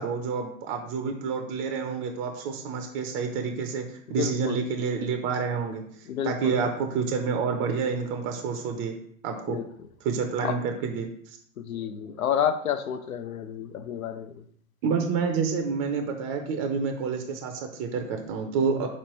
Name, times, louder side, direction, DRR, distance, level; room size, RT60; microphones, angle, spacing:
voice 1, 0.0-5.8 6.2-9.0 9.2-9.6 10.0-11.4 14.8-18.9, right 5 dB, 30° right, 4 dB, 0.4 m, -28 dB
voice 2, 4.1-4.6 6.1-6.6 9.5-9.7 10.4-10.6 11.6-14.4, left 8 dB, 90° left, 10 dB, 0.6 m, -30 dB
4.1 x 3.1 x 2.9 m, 0.64 s
hypercardioid pair, 110°, 41 cm